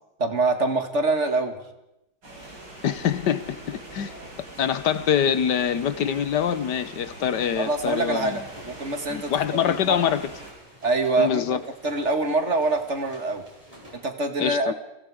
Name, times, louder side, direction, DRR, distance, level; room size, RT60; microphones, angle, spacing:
voice 1, 0.2-1.6 7.6-9.3 9.7-10.1 10.8-13.5 13.9-14.7, right 3 dB, 40° right, 2.4 m, -25 dB
sound 1, 2.2-10.5, right 1 dB, 90° right, 6.8 m, -43 dB
voice 2, 2.8-4.1 4.6-8.4 9.1-10.3 11.2-11.6 14.4-14.7, left 8 dB, 85° left, 1.7 m, -24 dB
sound 2, 8.1-14.0, equal, 20° right, 6.4 m, -49 dB
29.5 x 23.0 x 5.1 m
omnidirectional pair, 1.8 m